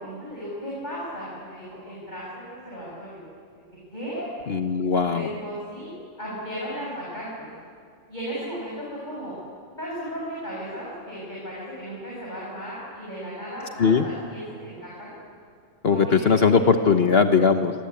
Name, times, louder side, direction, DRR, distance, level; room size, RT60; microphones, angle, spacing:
voice 1, 0.0-3.2 3.5-3.6 3.9-4.3 5.1-5.9 6.2-7.5 8.1-9.3 9.8-15.1 15.8-17.0, equal, 35° left, -6 dB, 7.4 m, -35 dB
voice 2, 4.5-5.3 13.8-14.0 15.8-17.7, left 5 dB, 55° left, 7 dB, 1.3 m, -19 dB
28.5 x 22.0 x 8.6 m, 2.2 s
omnidirectional pair, 1.3 m